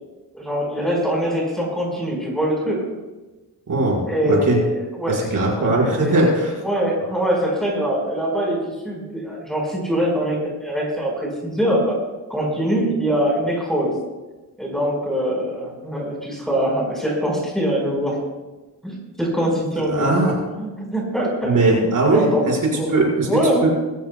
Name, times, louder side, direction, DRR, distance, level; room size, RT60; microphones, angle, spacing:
voice 1, 0.3-2.8 4.1-6.1 6.6-12.0 12.3-13.9 14.6-18.2 18.8-22.9 23.3-23.7, equal, ahead, -3 dB, 4.8 m, -23 dB
voice 2, 3.7-4.0 4.2-4.6 5.1-6.5 19.9-20.3 21.4-23.3 23.6-23.7, right 2 dB, 50° right, -4 dB, 5.2 m, -19 dB
23.0 x 15.0 x 2.3 m, 1.2 s
wide cardioid pair, 145°, 40 cm